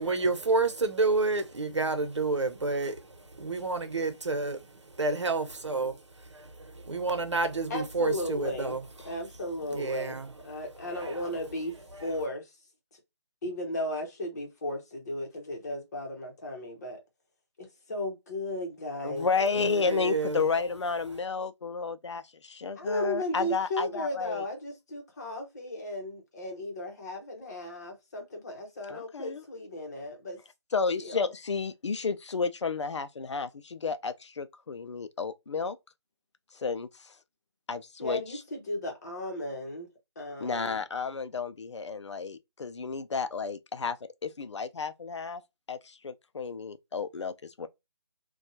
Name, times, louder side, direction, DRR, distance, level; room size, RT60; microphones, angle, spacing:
voice 1, 0.0-5.9 6.6-8.8 9.7-10.3 10.9-11.2 11.9-12.0 19.6-20.4, right 3 dB, 90° right, 0.8 m, -29 dB
voice 2, 7.7-8.8 9.0-11.7 12.0-12.5 13.4-17.0 17.6-19.6 22.8-30.4 31.0-31.3 38.0-39.9 40.2-40.8, left 1 dB, 40° left, 1.0 m, -35 dB
voice 3, 19.0-24.4 28.9-29.4 30.7-35.8 36.5-37.1 37.7-38.4 40.4-44.0 44.2-45.4 45.7-47.7, left 5 dB, 85° left, 0.4 m, -32 dB
2.6 x 2.3 x 2.6 m
figure-of-eight pair, 160°, 15 cm